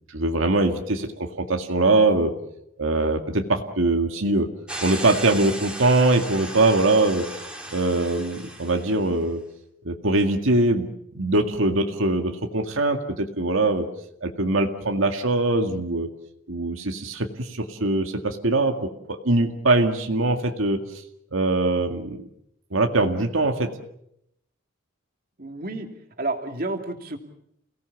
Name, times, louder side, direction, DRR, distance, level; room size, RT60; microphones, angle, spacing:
voice 1, 0.1-2.3 2.8-4.5 4.8-7.3 7.7-9.4 9.8-10.9 11.1-13.9 14.2-16.1 16.5-20.8 21.3-22.2 22.7-23.7, right 2 dB, 80° right, 4 dB, 2.0 m, -22 dB
sound 1, 4.7-9.1, right 1 dB, 5° right, 3.4 m, -36 dB
voice 2, 25.4-25.9 26.2-27.2, right 2 dB, 45° right, 4 dB, 2.7 m, -30 dB
29.5 x 18.5 x 7.2 m, 0.76 s
head